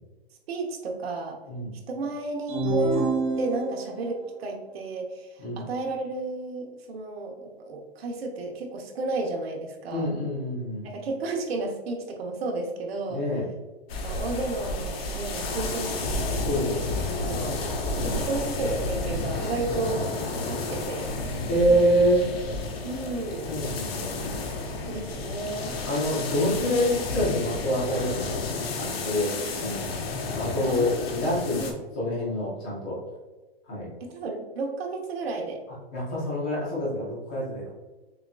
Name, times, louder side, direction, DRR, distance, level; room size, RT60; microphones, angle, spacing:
voice 1, 0.5-1.4 1.9-3.1 3.4-10.1 10.8-13.2 14.0-16.5 17.3-17.6 18.0-20.1 20.5-21.1 22.8-23.5 24.9-25.7 30.7-31.3 31.6-31.7 34.0-35.6, right 3 dB, 70° right, 2 dB, 1.0 m, -32 dB
sound 1, 2.5-4.1, right 3 dB, 50° right, 1.2 m, -26 dB
voice 2, 9.9-10.9 13.1-13.4 16.4-17.3 17.9-18.2 21.5-22.3 23.5-24.2 25.1-25.3 25.8-29.9 30.3-31.6 31.9-33.0 33.7-33.9 35.9-37.7, equal, 10° left, -6 dB, 0.3 m, -26 dB
sound 2, 13.9-31.7, left 3 dB, 70° left, 1.0 m, -31 dB
6.5 x 2.5 x 2.3 m, 1.2 s
hypercardioid pair, 170°, 31 cm